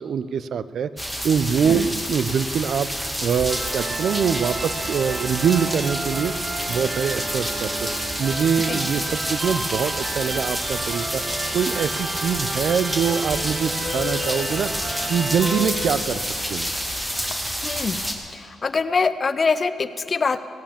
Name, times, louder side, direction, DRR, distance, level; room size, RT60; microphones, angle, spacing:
voice 1, 0.0-6.3 6.7-7.9 8.2-11.2 11.5-14.7 15.1-16.7, right 7 dB, 70° right, 15 dB, 0.5 m, -24 dB
sound 1, 1.0-18.1, equal, 10° right, 2.0 m, -29 dB
sound 2, 3.5-15.7, right 3 dB, 35° right, 0.8 m, -32 dB
sound 3, 13.6-17.3, left 8 dB, 75° left, 0.9 m, -36 dB
voice 2, 17.6-18.1 18.3-20.4, left 4 dB, 40° left, 13 dB, 0.7 m, -24 dB
17.0 x 9.1 x 7.2 m, 2.7 s
cardioid pair, 70°, 0 cm